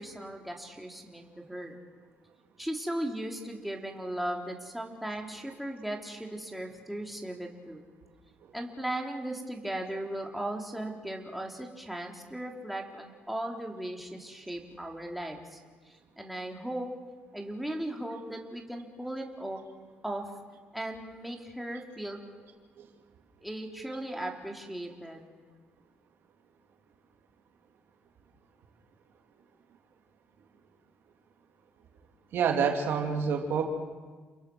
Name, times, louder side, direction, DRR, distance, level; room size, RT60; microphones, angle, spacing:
voice 1, 0.0-1.8 2.6-7.8 8.5-15.6 15.9-16.9 17.3-19.6 20.0-20.3 20.7-22.2 23.4-25.3, right 1 dB, ahead, 0 dB, 3.8 m, -37 dB
voice 2, 32.3-33.6, right 6 dB, 70° right, 2 dB, 3.4 m, -27 dB
30.0 x 21.5 x 6.4 m, 1.4 s
cardioid pair, 80°, 4 cm